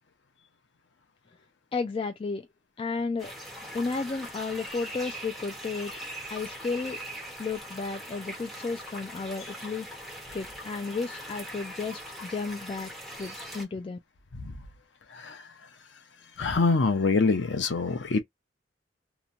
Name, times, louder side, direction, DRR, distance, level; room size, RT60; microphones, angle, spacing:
voice 1, 1.7-2.5 2.8-3.3 3.7-5.9 6.3-7.0 7.4-9.9 10.3-12.9 13.2-14.0, left 4 dB, 30° left, 0.3 m, -33 dB
sound 1, 3.2-13.7, equal, ahead, 1.1 m, -41 dB
voice 2, 15.1-15.4 16.4-18.2, left 3 dB, 75° left, 0.7 m, -25 dB
2.9 x 2.2 x 2.5 m
head